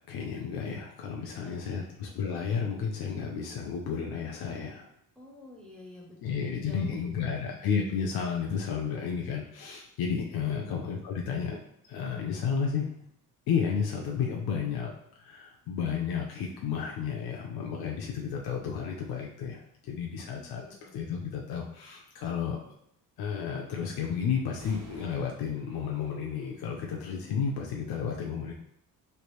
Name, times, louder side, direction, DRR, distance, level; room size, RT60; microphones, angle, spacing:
voice 1, 0.1-4.9 6.2-11.6 11.9-12.9 13.5-14.9 15.2-20.6 20.9-22.6 23.2-28.5, left 6 dB, 80° left, 0 dB, 0.6 m, -32 dB
voice 2, 1.4-1.9 5.2-7.4 10.3-10.7 20.2-20.9, left 2 dB, 5° left, -2 dB, 0.4 m, -49 dB
sound 1, 24.5-27.7, right 2 dB, 55° right, 0.7 m, -53 dB
3.3 x 2.4 x 3.0 m, 0.75 s
cardioid pair, 170°, 36 cm